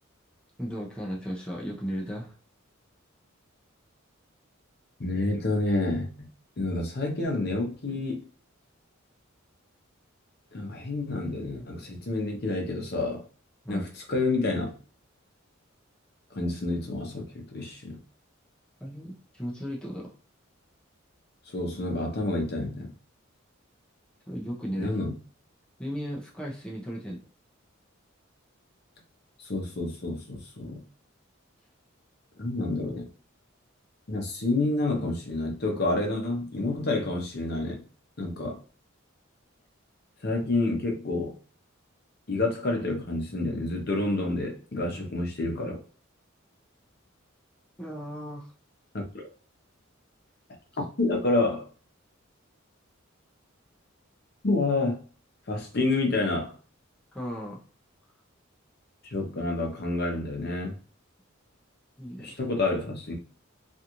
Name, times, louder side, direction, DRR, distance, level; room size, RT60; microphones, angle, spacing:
voice 1, 0.6-2.3 7.9-8.0 13.6-13.9 18.8-20.1 24.3-25.0 25.8-27.2 47.8-48.5 57.1-57.6 62.0-62.4, equal, 5° left, 0.5 m, -35 dB
voice 2, 5.0-6.3 6.6-8.2 10.5-13.2 13.7-14.7 16.3-18.0 21.5-22.9 24.8-25.1 29.4-30.8 32.4-33.1 34.1-37.8 38.2-38.6 40.2-41.3 42.3-45.8 48.9-49.3 51.0-51.7 54.4-55.0 55.5-56.5 59.0-60.8 62.2-63.2, left 2 dB, 50° left, 0.7 m, -29 dB
2.5 x 2.4 x 2.9 m
head